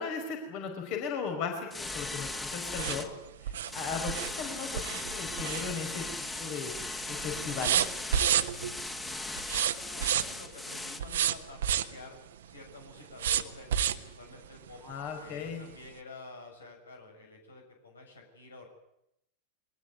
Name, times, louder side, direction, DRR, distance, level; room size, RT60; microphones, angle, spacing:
voice 1, 0.0-3.1 3.4-6.1 6.4-7.8 14.8-15.7, left 6 dB, 50° left, 4 dB, 5.3 m, -37 dB
sound 1, 1.7-3.1 3.7-11.0, left 2 dB, 10° left, 2.6 m, -38 dB
sound 2, 2.8-6.1 6.5-6.9 7.1-8.8 9.4-10.5 11.0-12.0 13.2-14.1 14.7-14.8 15.2-15.3, right 10 dB, 70° right, 1.4 m, -30 dB
voice 2, 9.4-14.8 15.2-18.7, left 3 dB, 80° left, 3 dB, 7.3 m, -50 dB
23.0 x 20.0 x 9.5 m, 0.81 s
figure-of-eight pair, 90°, 0 cm